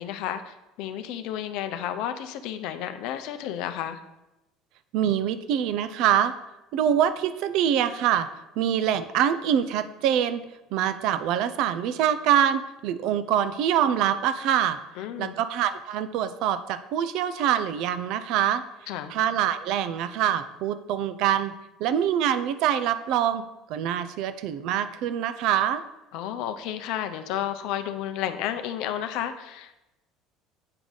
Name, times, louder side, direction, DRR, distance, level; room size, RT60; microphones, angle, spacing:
voice 1, 0.0-4.0 15.0-15.3 18.9-19.1 26.1-29.8, left 10 dB, 65° left, 9 dB, 0.5 m, -32 dB
voice 2, 4.9-6.3 6.7-8.3 8.6-10.4 10.7-14.8 15.2-18.6 19.1-21.5 21.8-23.4 23.7-25.8, right 9 dB, 65° right, 12 dB, 0.4 m, -24 dB
7.6 x 4.6 x 3.9 m, 0.96 s
hypercardioid pair, 70°, 0 cm